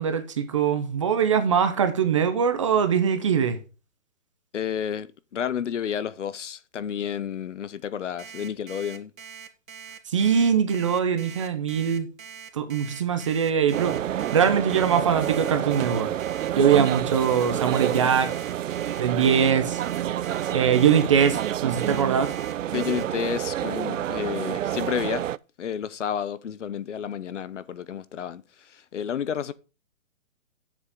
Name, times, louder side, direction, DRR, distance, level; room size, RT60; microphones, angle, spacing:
voice 1, 0.0-3.6 10.1-12.1 12.5-16.1 16.5-18.4 19.0-19.8 20.5-22.4, right 7 dB, 25° right, 0.7 m, -22 dB
voice 2, 4.5-9.1 22.7-25.3 25.6-28.4 28.7-29.5, left 8 dB, 60° left, 0.9 m, -31 dB
Alarm, 8.2-23.0, right 6 dB, 85° right, 2.0 m, -43 dB
sound 1, 13.7-25.4, right 11 dB, 70° right, 0.5 m, -28 dB
7.4 x 7.3 x 5.4 m
hypercardioid pair, 165°, 40 cm